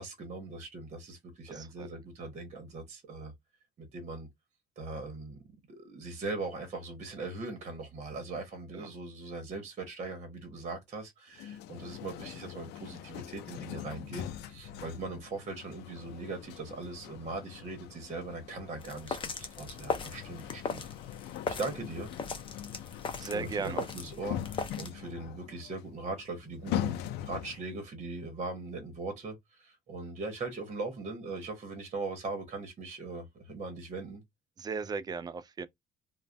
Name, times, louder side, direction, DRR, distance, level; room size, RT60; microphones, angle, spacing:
voice 1, 0.0-3.3 3.8-4.3 4.8-5.4 5.7-20.8 21.6-22.1 23.2-26.9 27.2-34.2, right 3 dB, 40° right, 1.0 m, -40 dB
sound 1, 11.3-27.8, left 11 dB, 80° left, 0.4 m, -42 dB
sound 2, 18.8-24.9, left 5 dB, 30° left, 0.6 m, -38 dB
voice 2, 23.2-23.8 34.6-35.7, right 4 dB, 25° right, 0.3 m, -35 dB
2.4 x 2.2 x 3.2 m
cardioid pair, 110°, 17 cm